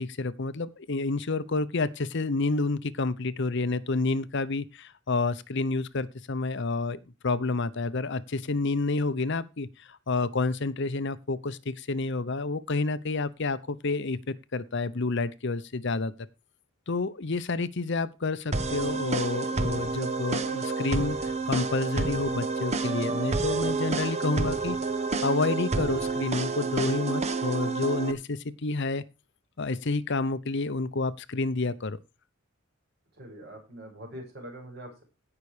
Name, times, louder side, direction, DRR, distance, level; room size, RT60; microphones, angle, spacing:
voice 1, 0.0-7.0 7.2-16.1 16.9-24.8 25.2-29.0 29.6-32.0, left 3 dB, 60° left, 14 dB, 0.8 m, -29 dB
sound 1, 18.5-28.1, right 3 dB, 30° right, 1.0 m, -29 dB
voice 2, 33.2-35.0, right 1 dB, 50° right, 1 dB, 6.1 m, -43 dB
16.5 x 6.0 x 4.9 m, 0.28 s
head